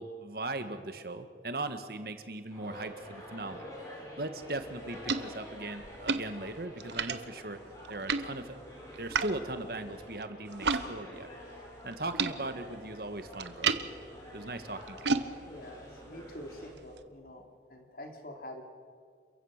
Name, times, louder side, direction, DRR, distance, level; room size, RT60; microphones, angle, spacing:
voice 1, 0.0-3.7 4.2-7.6 7.9-8.6 9.0-11.3 11.8-13.7 14.3-15.2, right 2 dB, 55° right, 9 dB, 1.6 m, -39 dB
sound 1, 2.5-16.7, left 1 dB, 20° left, 5.2 m, -48 dB
sound 2, 4.4-10.9 11.1-17.0, right 5 dB, 80° right, 1.1 m, -36 dB
voice 2, 15.4-18.6, left 1 dB, 55° left, 3 dB, 3.2 m, -46 dB
28.5 x 15.5 x 6.7 m, 2.1 s
head